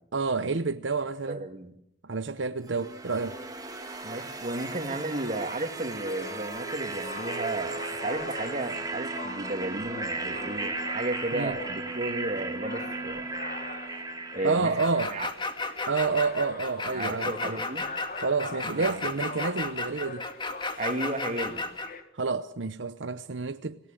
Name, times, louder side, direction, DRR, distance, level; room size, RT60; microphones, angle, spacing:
voice 1, 0.1-1.5 2.0-3.4 11.3-11.6 14.4-15.2 15.9-17.6 18.2-20.2 22.1-23.8, right 4 dB, 85° right, 0.9 m, -29 dB
voice 2, 1.3-1.7 4.0-13.3 14.3-14.7 15.1-15.3 16.9-17.9 18.7-19.0 20.8-21.7, right 2 dB, 40° right, 2.5 m, -33 dB
sound 1, 2.7-15.6, right 3 dB, 20° right, 2.5 m, -36 dB
sound 2, 6.0-22.0, left 3 dB, 45° left, 2.0 m, -43 dB
sound 3, 14.8-21.9, left 3 dB, 25° left, 2.2 m, -33 dB
26.5 x 17.5 x 9.2 m
head